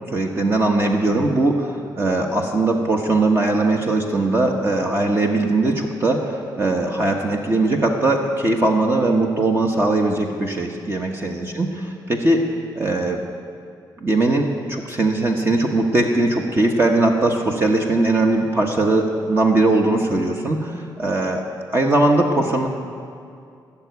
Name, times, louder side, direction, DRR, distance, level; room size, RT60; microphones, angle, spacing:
voice 1, 0.1-11.7 12.1-12.5 12.7-13.2 14.0-21.4 21.7-22.7, right 2 dB, 30° right, 1 dB, 1.2 m, -20 dB
17.5 x 7.0 x 9.4 m, 2.4 s
cardioid pair, 115°, 8 cm